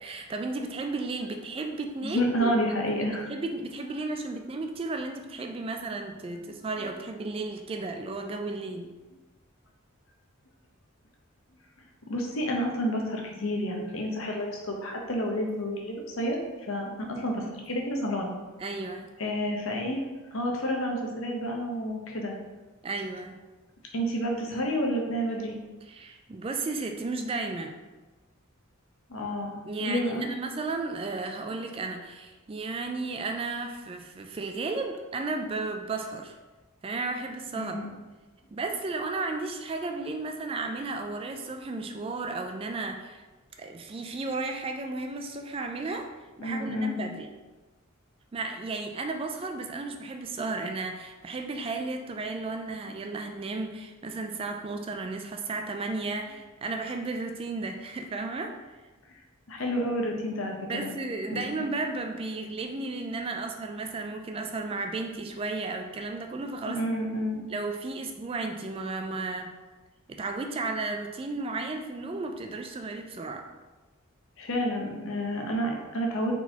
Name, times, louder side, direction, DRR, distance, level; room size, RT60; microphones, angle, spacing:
voice 1, 0.0-2.5 3.3-8.9 18.6-19.1 22.8-23.4 25.8-27.7 29.7-36.3 36.8-37.8 38.5-43.2 43.6-46.1 46.4-47.3 48.3-58.5 60.7-66.9 67.5-69.5 70.1-73.5, right 3 dB, 25° right, 4 dB, 0.3 m, -34 dB
voice 2, 2.0-3.3 12.1-16.4 16.7-18.3 19.2-20.0 20.3-22.4 23.9-25.6 29.1-29.5 29.8-30.3 37.6-37.9 46.4-47.0 59.5-60.9 61.3-61.4 66.7-67.5 74.4-76.4, equal, 70° left, 1 dB, 0.8 m, -29 dB
4.5 x 4.0 x 2.8 m, 1.2 s
head